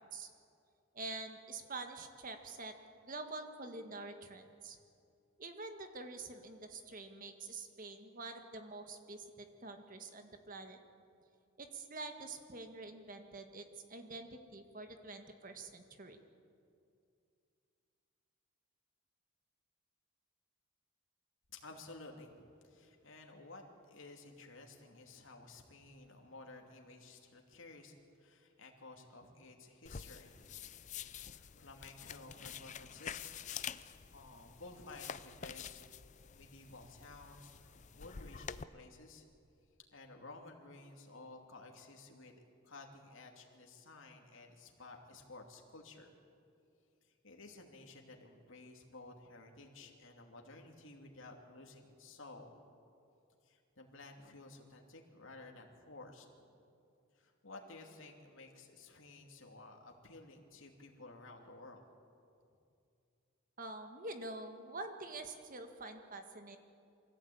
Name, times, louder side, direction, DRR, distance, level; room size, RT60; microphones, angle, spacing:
voice 1, 0.9-2.7 3.0-4.8 5.4-10.8 11.6-16.2 63.6-66.6, right 3 dB, 40° right, 6 dB, 1.7 m, -47 dB
voice 2, 21.5-30.8 31.4-33.7 34.1-39.2 39.9-46.1 47.0-52.6 53.4-56.6 57.1-61.8, left 2 dB, 70° left, 2 dB, 2.7 m, -54 dB
sound 1, 29.9-38.6, left 8 dB, 35° left, 0.5 m, -48 dB
24.0 x 16.5 x 8.7 m, 2.5 s
head